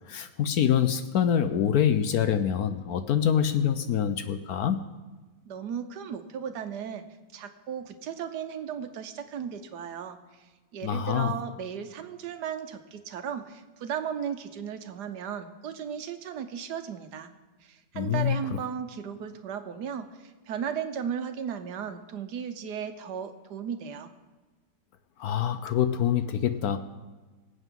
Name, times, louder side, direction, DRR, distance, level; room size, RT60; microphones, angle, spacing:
voice 1, 0.1-4.8 10.8-11.3 18.0-18.4 25.2-26.8, left 9 dB, 70° left, 10 dB, 1.1 m, -25 dB
voice 2, 5.5-7.0 7.3-17.3 17.6-24.1, right 8 dB, 75° right, 9 dB, 1.4 m, -36 dB
24.0 x 8.1 x 3.7 m, 1.3 s
omnidirectional pair, 1.8 m